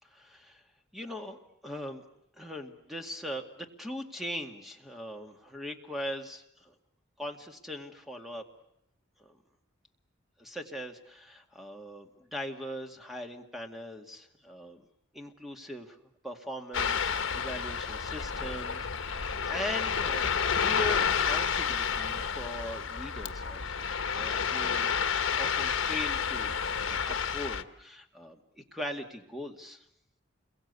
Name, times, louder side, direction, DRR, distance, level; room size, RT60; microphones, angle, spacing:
voice 1, 0.0-0.6 0.9-2.0 2.4-6.7 7.2-8.4 9.2-9.4 10.4-14.9 15.1-16.0 16.2-25.0 25.4-29.8, left 1 dB, ahead, 4 dB, 2.1 m, -40 dB
Ocean, 16.7-27.6, left 6 dB, 75° left, 1.2 m, -30 dB
29.0 x 22.5 x 8.3 m, 0.79 s
head